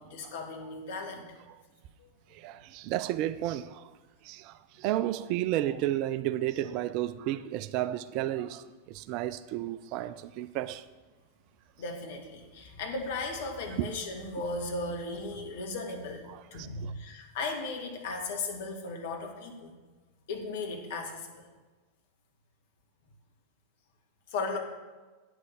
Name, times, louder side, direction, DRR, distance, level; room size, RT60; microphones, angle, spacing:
voice 1, 0.0-1.4 2.0-2.1 11.8-16.2 16.5-19.8 20.3-21.5 24.3-24.6, left 3 dB, 55° left, 1.8 m, -36 dB
voice 2, 2.3-3.9 4.2-10.8 13.8-13.9 16.3-16.9, right 13 dB, 40° right, 0.4 m, -32 dB
8.9 x 6.2 x 7.3 m
figure-of-eight pair, 90°, 0 cm